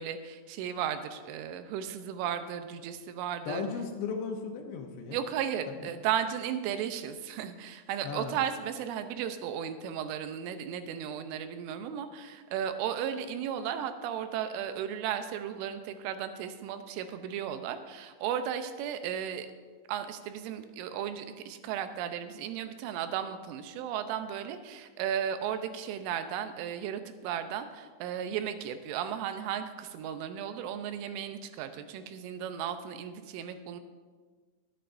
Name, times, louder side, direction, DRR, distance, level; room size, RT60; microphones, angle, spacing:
voice 1, 0.0-3.6 5.1-19.5 19.9-33.8, right 9 dB, 90° right, 9 dB, 3.2 m, -35 dB
voice 2, 3.5-5.2 5.8-5.9 8.0-8.4, left 5 dB, 75° left, 3 dB, 2.8 m, -36 dB
21.0 x 9.0 x 2.6 m, 1.5 s
omnidirectional pair, 5.5 m